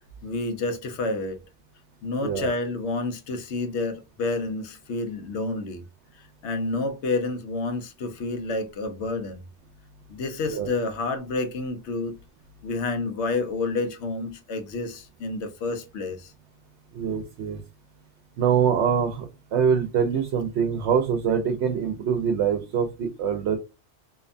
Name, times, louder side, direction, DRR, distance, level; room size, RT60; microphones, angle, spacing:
voice 1, 0.2-1.4 2.0-5.8 6.4-9.4 10.1-12.2 12.6-16.3, left 3 dB, 80° left, 0.9 m, -29 dB
voice 2, 16.9-17.6 18.4-23.6, right 7 dB, 80° right, 0.9 m, -24 dB
2.7 x 2.1 x 2.4 m
omnidirectional pair, 1.1 m